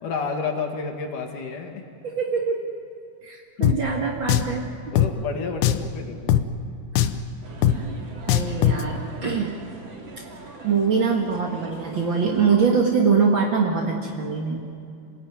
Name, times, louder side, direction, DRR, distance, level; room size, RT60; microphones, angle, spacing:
voice 1, 0.0-1.8 3.6-3.7 4.6-6.3, left 5 dB, 50° left, 3 dB, 3.3 m, -30 dB
voice 2, 2.0-2.7 3.2-4.7 6.9-7.1 7.7-7.9 8.3-9.5 10.6-14.6, right 5 dB, 55° right, 0 dB, 1.3 m, -23 dB
Drum, 3.6-3.8 4.3-4.5 5.0-5.1 5.6-5.9 6.3-6.4 7.0-7.2 7.6-7.8 8.3-8.8, left 11 dB, 75° left, 2.5 m, -20 dB
sound 1, 7.4-12.6, right 3 dB, 35° right, 2.3 m, -42 dB
27.5 x 18.5 x 9.6 m, 2.6 s
omnidirectional pair, 5.2 m